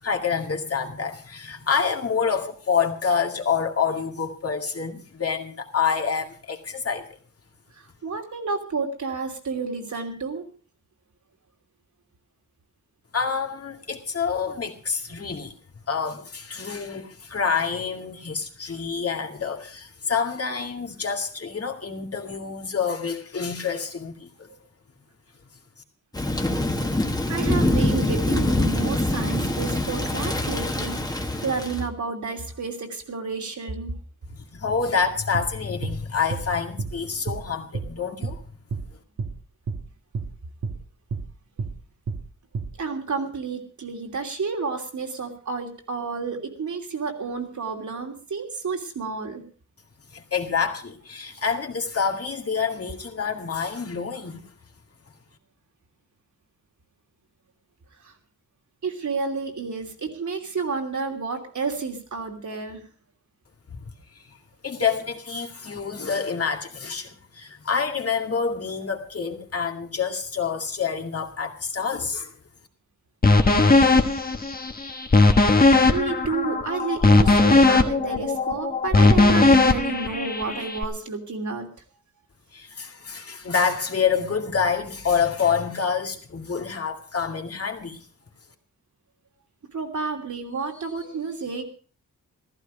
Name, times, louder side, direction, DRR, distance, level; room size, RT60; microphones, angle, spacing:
voice 1, 0.0-7.1 13.1-15.5 15.9-24.5 34.3-38.4 50.1-54.4 63.7-63.8 64.3-64.4 64.6-72.3 82.5-88.0, left 6 dB, 50° left, 2.2 m, -27 dB
voice 2, 7.8-10.4 24.5-24.6 27.3-33.9 42.8-49.4 58.0-58.2 58.8-62.9 75.9-81.7 89.7-91.6, right 4 dB, 70° right, 3.0 m, -30 dB
Thunder / Rain, 26.1-31.9, left 1 dB, 10° left, 1.6 m, -24 dB
sound 1, 35.3-35.5 35.8-36.0 36.3-36.5 36.8-36.9 37.3-37.4 37.7-37.9 38.2-38.4 38.7-38.9 39.2-39.3 39.7-39.8 40.1-40.3 40.6-40.8 41.1-41.3 41.6-41.7 42.1-42.2 42.5-42.7, right 4 dB, 85° right, 1.9 m, -30 dB
sound 2, 73.2-80.8, left 3 dB, 30° left, 1.3 m, -18 dB
15.0 x 14.5 x 5.0 m
wide cardioid pair, 140°, 31 cm